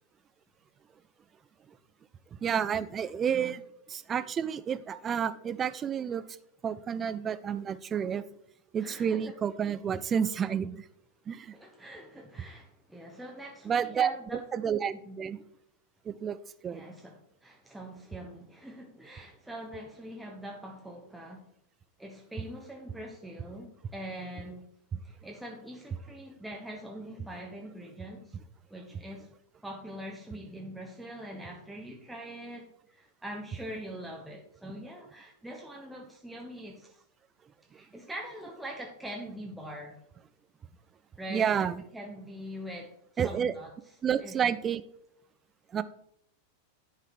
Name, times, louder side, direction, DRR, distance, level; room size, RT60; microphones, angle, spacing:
voice 1, 2.4-3.6 3.9-6.2 6.6-8.2 8.7-10.8 11.3-11.5 13.7-14.1 14.5-15.4 16.1-16.4 16.6-16.8 24.9-25.0 41.3-41.8 43.2-43.5 44.0-44.8 45.7-45.8, right 8 dB, 25° right, 13 dB, 0.4 m, -30 dB
voice 2, 8.8-9.3 11.5-14.5 15.0-15.3 16.7-21.5 22.0-24.7 25.0-28.4 28.7-29.3 29.6-37.0 37.7-39.9 41.2-41.7 41.9-42.9 43.2-43.7 44.2-44.5, equal, 5° right, 0 dB, 0.9 m, -43 dB
11.0 x 3.8 x 4.7 m, 0.73 s
figure-of-eight pair, 90°, 0 cm